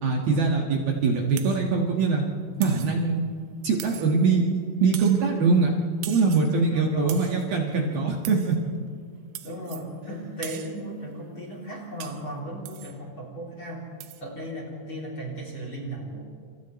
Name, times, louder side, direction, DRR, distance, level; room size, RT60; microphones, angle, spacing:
voice 1, 0.0-2.3 2.6-3.2 3.6-4.4 4.8-5.8 6.1-8.6, right 4 dB, 60° right, -1 dB, 3.0 m, -22 dB
sound 1, 1.4-1.7 2.6-3.0 3.8-4.3 4.9-5.3 6.0-6.6 7.1-7.5 8.3-8.6 9.4-9.9 10.4-10.8 12.0-12.3 12.7-13.0 14.0-14.2, right 14 dB, 85° right, 3.5 m, -41 dB
voice 2, 6.6-7.2 9.4-13.9 14.2-16.2, right 1 dB, 30° left, -2 dB, 3.2 m, -36 dB
29.5 x 28.0 x 3.2 m, 2.2 s
omnidirectional pair, 5.7 m